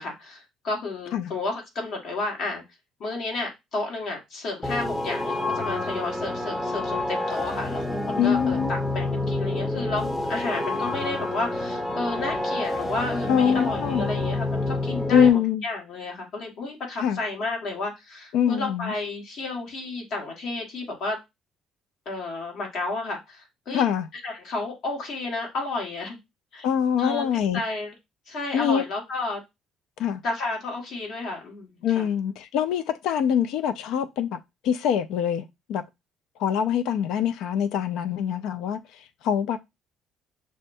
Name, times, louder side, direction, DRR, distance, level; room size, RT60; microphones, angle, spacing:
voice 1, 0.0-2.6 3.0-21.2 22.0-23.8 24.2-26.2 26.5-26.6 27.0-27.3 27.5-27.9 28.3-29.4 30.2-32.1, left 3 dB, 60° left, 1.6 m, -32 dB
sound 1, 4.6-15.3, left 2 dB, 5° left, 0.6 m, -28 dB
voice 2, 8.2-8.7 13.3-14.1 15.1-15.6 17.0-17.2 18.3-18.9 23.7-24.1 26.6-27.6 28.5-28.8 30.0-30.2 31.8-34.4 34.6-35.8 36.4-39.6, left 8 dB, 75° left, 0.3 m, -24 dB
6.3 x 2.2 x 2.5 m
cardioid pair, 125°, 0 cm